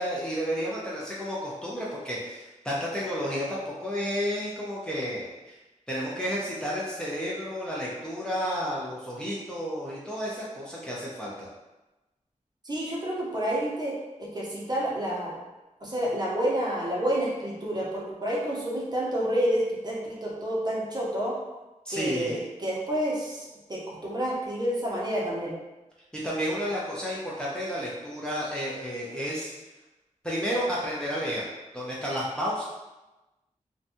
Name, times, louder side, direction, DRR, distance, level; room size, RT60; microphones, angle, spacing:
voice 1, 0.0-5.6 5.9-11.5 21.9-22.4 26.1-29.5 30.2-31.4 31.7-32.7, equal, 5° left, -6 dB, 0.5 m, -31 dB
voice 2, 12.6-15.3 15.8-21.4 21.9-25.5, right 1 dB, 30° right, -5 dB, 0.7 m, -29 dB
2.6 x 2.2 x 2.6 m, 1.1 s
wide cardioid pair, 90°, 13 cm